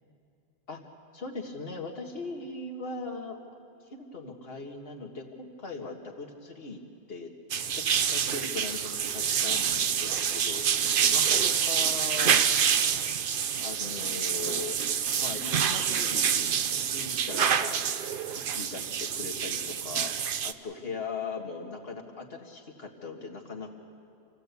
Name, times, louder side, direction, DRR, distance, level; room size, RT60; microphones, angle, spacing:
voice 1, 1.1-3.4 3.9-6.8 7.1-12.6 13.6-14.8 15.2-17.8 18.3-23.7, left 4 dB, 60° left, 1 dB, 2.1 m, -40 dB
sound 1, 7.5-20.5, right 8 dB, 55° right, 0.8 m, -27 dB
27.5 x 16.5 x 8.3 m, 2.5 s
omnidirectional pair, 1.1 m